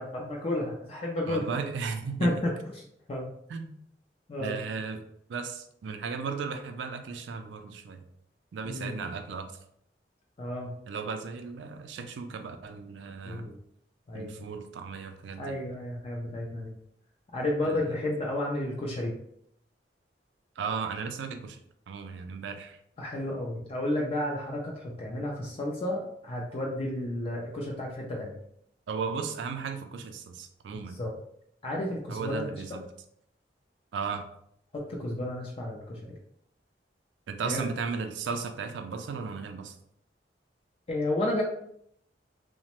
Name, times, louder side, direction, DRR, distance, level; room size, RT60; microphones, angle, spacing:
voice 1, 0.0-1.5 2.2-3.3 4.3-4.6 8.6-8.9 10.4-10.7 13.3-13.5 14.1-14.6 15.4-16.7 17.3-19.1 23.0-28.3 30.9-31.1 31.6-32.8 34.7-36.2 37.4-37.6 40.9-41.4, left 1 dB, 35° left, -2 dB, 0.4 m, -32 dB
voice 2, 1.3-2.4 3.5-3.7 4.4-5.0 5.3-8.0 8.5-9.5 10.9-13.5 14.1-15.6 17.6-18.0 20.6-21.6 21.9-22.8 28.9-31.0 32.1-32.9 33.9-34.3 37.3-39.7, right 5 dB, 85° right, 6 dB, 0.3 m, -35 dB
2.9 x 2.1 x 2.9 m, 0.71 s
head